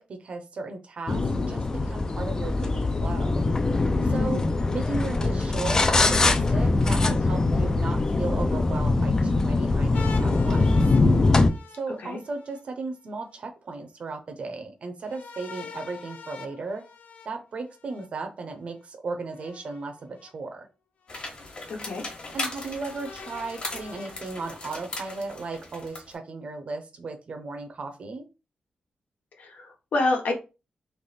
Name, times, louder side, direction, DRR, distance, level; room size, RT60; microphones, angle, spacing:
voice 1, 0.0-3.5 4.0-4.4 4.7-10.8 11.7-16.8 17.2-20.7 22.3-28.3, right 3 dB, 45° right, 5 dB, 0.7 m, -36 dB
sound 1, 1.1-11.5, left 3 dB, 25° left, 0.4 m, -22 dB
sound 2, 9.9-12.6 15.0-18.1 19.4-20.3 21.1-21.2 22.8-24.8, left 6 dB, 70° left, 0.6 m, -44 dB
sound 3, 21.1-26.1, left 2 dB, 40° left, 1.2 m, -38 dB
voice 2, 21.7-22.0 29.4-30.3, left 2 dB, 85° left, 2 dB, 1.2 m, -28 dB
3.4 x 3.1 x 4.1 m, 0.29 s
wide cardioid pair, 180°, 3 cm